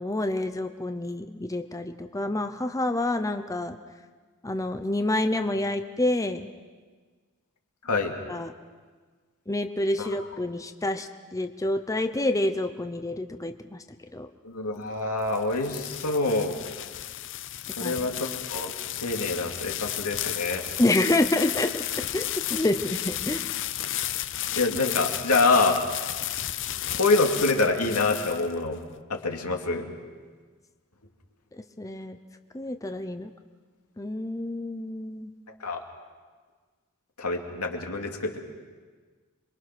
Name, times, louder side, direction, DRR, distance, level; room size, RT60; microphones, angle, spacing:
voice 1, 0.0-3.8 4.4-6.5 8.3-8.5 9.5-13.8 14.1-14.3 17.8-17.9 20.8-21.8 22.1-23.5 31.8-32.2 32.5-33.3 34.0-35.3, left 1 dB, 15° left, 8 dB, 0.7 m, -28 dB
voice 2, 7.8-8.1 10.0-10.1 14.4-16.6 17.8-18.2 18.5-18.7 19.0-20.6 24.5-25.8 27.0-28.8 29.1-29.9 35.6-35.8 37.2-38.4, left 3 dB, 85° left, 2 dB, 2.5 m, -26 dB
sound 1, 15.0-28.8, left 12 dB, 60° left, 0.7 m, -33 dB
27.0 x 22.5 x 6.1 m, 1.5 s
head